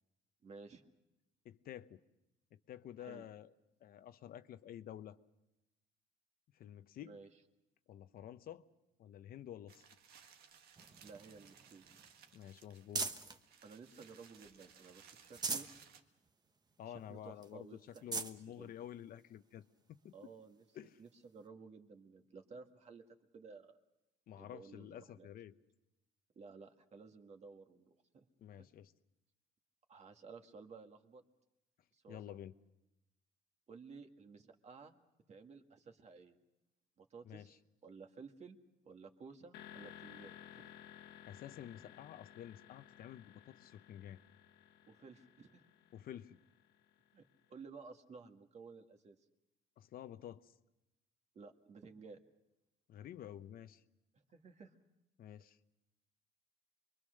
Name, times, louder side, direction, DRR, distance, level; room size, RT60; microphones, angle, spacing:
voice 1, 0.4-0.8 3.0-3.3 7.0-7.3 11.0-11.8 13.6-15.7 16.9-18.7 20.1-20.7 21.0-23.0 23.3-23.7 24.3-25.3 26.4-28.3 28.6-28.7 29.9-31.2 31.9-32.2 33.7-35.0 35.3-36.4 37.0-38.6 38.8-40.7 44.9-45.7 47.1-47.2 47.5-49.2 51.3-52.2 54.3-54.8, right 4 dB, 40° right, 5 dB, 1.9 m, -55 dB
voice 2, 1.4-2.0 2.5-3.5 3.8-5.2 6.5-7.2 7.9-8.6 9.0-9.9 12.3-13.1 16.8-19.7 20.0-20.3 20.7-21.0 24.3-25.5 28.4-28.9 32.1-32.5 37.2-37.6 41.3-44.2 45.9-46.4 49.8-50.5 52.9-53.8 55.2-55.6, left 11 dB, 60° left, 11 dB, 0.9 m, -50 dB
sound 1, 9.7-16.0, right 7 dB, 70° right, 1.7 m, -62 dB
sound 2, 10.8-13.4 13.9-14.7 15.1-15.8 16.3-16.4 16.7-16.8 17.4-17.5 17.9-18.4 19.2-19.3 21.1-21.2, right 3 dB, 25° right, 1.2 m, -42 dB
sound 3, 39.5-47.3, left 11 dB, 90° left, 1.8 m, -57 dB
26.5 x 22.5 x 6.5 m, 0.95 s
cardioid pair, 110°, 17 cm